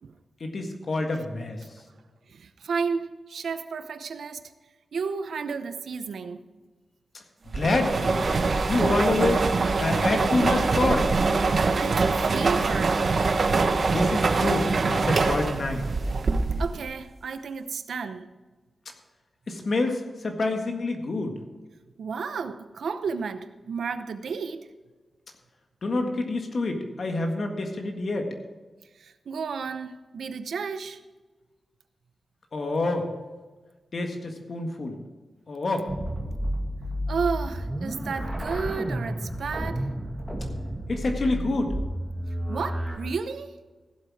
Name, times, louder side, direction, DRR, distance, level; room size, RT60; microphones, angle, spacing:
voice 1, 0.4-1.6 7.5-8.3 8.7-9.4 9.8-11.1 13.9-15.8 19.5-21.3 25.8-28.3 32.5-33.1 33.9-35.0 35.5-35.9 40.9-41.7, left 2 dB, 45° left, 1.7 m, -27 dB
voice 2, 2.3-4.5 4.9-6.4 11.5-13.0 16.6-18.3 22.0-24.7 29.0-31.0 37.1-39.9 42.5-43.6, right 5 dB, 85° right, 0.8 m, -32 dB
sound 1, 7.5-16.8, right 3 dB, 45° right, 1.0 m, -24 dB
sound 2, 35.9-43.0, equal, 5° right, 2.1 m, -31 dB
16.0 x 7.7 x 4.9 m
wide cardioid pair, 170°, 0 cm